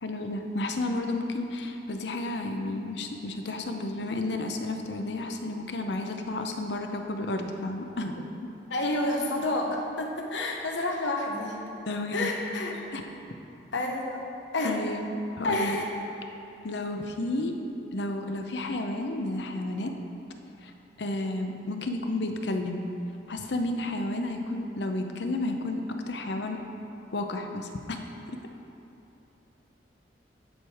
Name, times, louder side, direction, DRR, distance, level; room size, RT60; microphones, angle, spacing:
voice 1, 0.0-8.3 11.9-12.3 12.9-13.0 14.6-15.8 16.6-17.5 17.9-20.0 20.6-20.7 21.0-22.9 23.3-26.6 27.1-28.0, left 2 dB, 75° left, 5 dB, 0.6 m, -32 dB
voice 2, 8.7-11.6 12.1-12.8 13.7-14.2 14.5-14.8 15.4-15.9, left 2 dB, 90° left, 1 dB, 1.0 m, -29 dB
10.0 x 4.7 x 4.9 m, 2.8 s
head